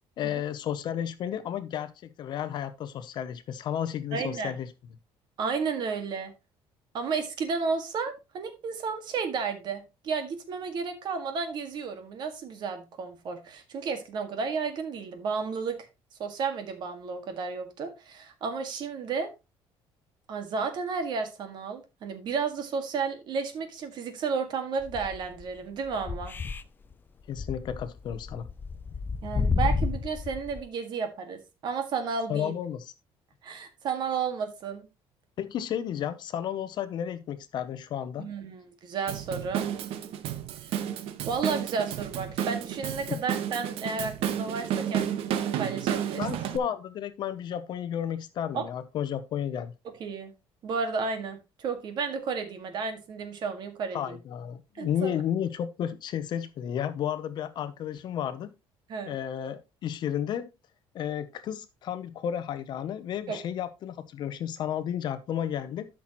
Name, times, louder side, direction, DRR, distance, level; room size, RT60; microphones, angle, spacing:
voice 1, 0.2-1.9 2.2-4.7 27.3-28.5 32.3-32.9 35.4-38.3 43.1-43.2 46.2-49.7 53.9-58.5 59.1-60.5 60.9-65.9, left 9 dB, 50° left, 0.7 m, -32 dB
voice 2, 4.1-4.5 5.4-6.3 6.9-15.8 16.2-19.3 20.3-26.3 29.2-32.5 33.4-34.9 38.2-39.6 41.3-46.3 48.5-48.6 50.0-50.3 50.6-54.2 54.8-55.2 58.9-59.2 63.3-63.4, right 5 dB, 45° right, 1.9 m, -32 dB
sound 1, 24.8-25.4 25.9-26.6 26.9-27.0 27.3-30.6, left 4 dB, 20° left, 0.4 m, -30 dB
Drum kit / Drum, 39.1-46.6, right 10 dB, 70° right, 1.1 m, -31 dB
12.5 x 6.0 x 3.0 m
cardioid pair, 165°, 10 cm